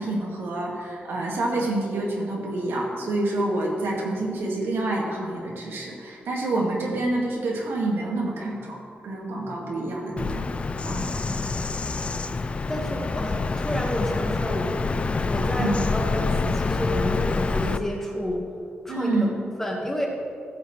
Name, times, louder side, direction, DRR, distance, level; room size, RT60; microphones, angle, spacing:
voice 1, 0.0-10.5 10.8-11.0 15.6-15.8 18.9-19.3, right 2 dB, 90° right, -2 dB, 1.9 m, -27 dB
Bird vocalization bird call bird song, 10.2-17.8, left 4 dB, 30° left, 0.4 m, -27 dB
voice 2, 10.9-11.5 12.6-14.8 15.2-18.5 18.8-19.3 19.6-20.1, left 1 dB, 10° left, -1 dB, 1.4 m, -30 dB
15.0 x 7.0 x 3.2 m, 2.4 s
wide cardioid pair, 140°, 4 cm